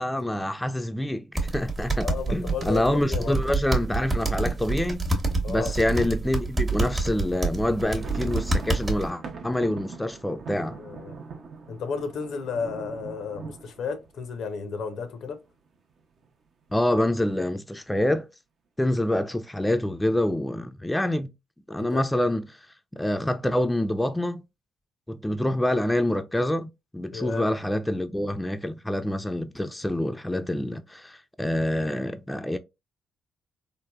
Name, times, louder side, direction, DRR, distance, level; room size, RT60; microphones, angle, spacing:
voice 1, 0.0-5.1 5.5-10.8 16.7-18.3 18.8-21.3 21.7-22.5 22.9-24.4 25.1-32.6, left 1 dB, 10° left, 0.3 m, -26 dB
sound 1, 1.4-9.1, right 2 dB, 30° right, 0.8 m, -27 dB
voice 2, 2.0-3.3 5.4-5.7 10.6-11.2 11.7-15.4 21.8-22.0 27.1-27.5, left 5 dB, 70° left, 0.5 m, -33 dB
sound 2, 7.7-15.3 15.7-15.8 16.0-16.3 16.8-17.3, right 4 dB, 60° right, 0.5 m, -41 dB
3.2 x 2.1 x 2.2 m
hypercardioid pair, 50°, 0 cm